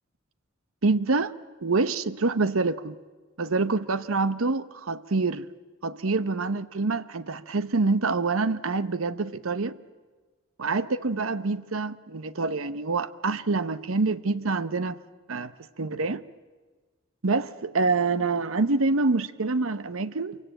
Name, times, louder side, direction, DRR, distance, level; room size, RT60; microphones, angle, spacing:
voice 1, 0.8-1.3 1.6-3.0 3.4-5.5 5.8-9.8 10.6-15.0 15.3-15.5 15.8-16.2 17.2-20.4, right 3 dB, 90° right, 0.9 m, -26 dB
27.0 x 24.0 x 9.0 m
head